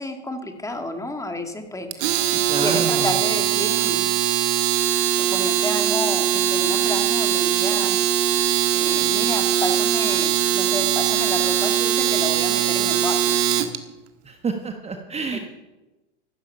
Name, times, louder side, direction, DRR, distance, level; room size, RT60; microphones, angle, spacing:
voice 1, 0.0-4.1 5.2-8.0 8.7-13.4 15.3-15.4, left 2 dB, 10° left, 5 dB, 1.9 m, -31 dB
Domestic sounds home sounds, 1.9-13.8, right 10 dB, 60° right, 1.7 m, -21 dB
voice 2, 2.5-3.1 14.2-15.4, right 4 dB, 20° right, 5 dB, 1.3 m, -28 dB
14.5 x 13.0 x 5.5 m, 1.1 s
hypercardioid pair, 105°, 35 cm